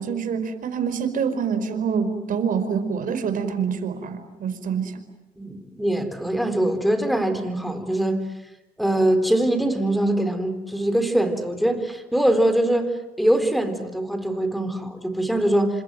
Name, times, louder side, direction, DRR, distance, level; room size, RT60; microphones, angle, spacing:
voice 1, 0.0-5.0, right 6 dB, 55° right, 9 dB, 5.0 m, -26 dB
voice 2, 5.4-8.2 8.8-15.8, right 1 dB, ahead, 9 dB, 4.2 m, -23 dB
29.0 x 26.5 x 7.7 m, 1.0 s
cardioid pair, 110°, 17 cm